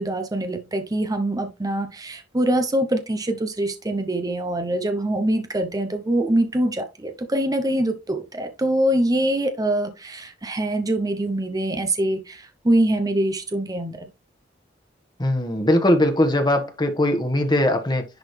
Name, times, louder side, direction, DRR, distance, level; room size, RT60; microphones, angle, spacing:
voice 1, 0.0-14.1, right 1 dB, 20° right, 0.7 m, -24 dB
voice 2, 15.2-18.1, left 1 dB, 25° left, 1.5 m, -20 dB
10.5 x 3.9 x 3.3 m
head